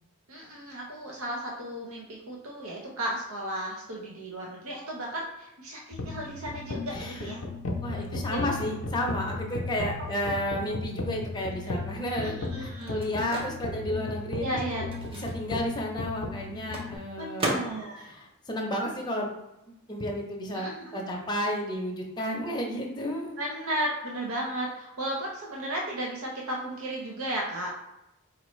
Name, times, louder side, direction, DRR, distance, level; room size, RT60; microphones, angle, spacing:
voice 1, 0.3-7.4 8.1-8.5 10.2-10.3 12.2-13.0 14.4-14.8 17.2-18.1 20.5-21.0 23.4-27.8, right 1 dB, 70° right, -3 dB, 0.7 m, -34 dB
sound 1, 5.9-17.0, left 3 dB, 60° left, 0.6 m, -35 dB
voice 2, 6.9-7.2 7.8-14.4 15.3-17.6 18.0-19.3 19.9-23.4, equal, 20° left, -1 dB, 0.7 m, -32 dB
Microwave oven, 12.4-19.6 19.8-21.8, right 1 dB, 25° right, 0.7 m, -39 dB
4.2 x 2.6 x 3.1 m, 0.92 s
head